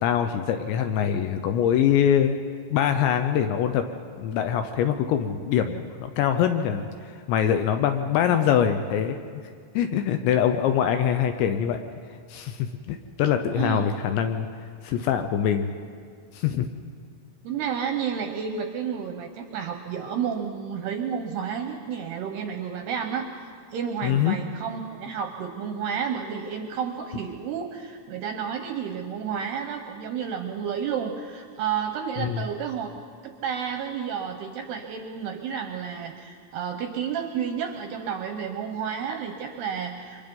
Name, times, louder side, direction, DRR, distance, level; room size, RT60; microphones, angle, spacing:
voice 1, 0.0-2.4 2.7-3.8 4.2-9.2 9.7-11.8 12.3-14.5 14.8-15.7 16.3-16.7 24.0-24.4 32.2-32.4, left 9 dB, 80° left, 7 dB, 2.7 m, -23 dB
voice 2, 13.5-13.9 17.4-23.3 23.7-32.9 33.2-40.2, right 7 dB, 75° right, 5 dB, 2.5 m, -31 dB
29.0 x 24.5 x 5.4 m, 2.1 s
omnidirectional pair, 5.8 m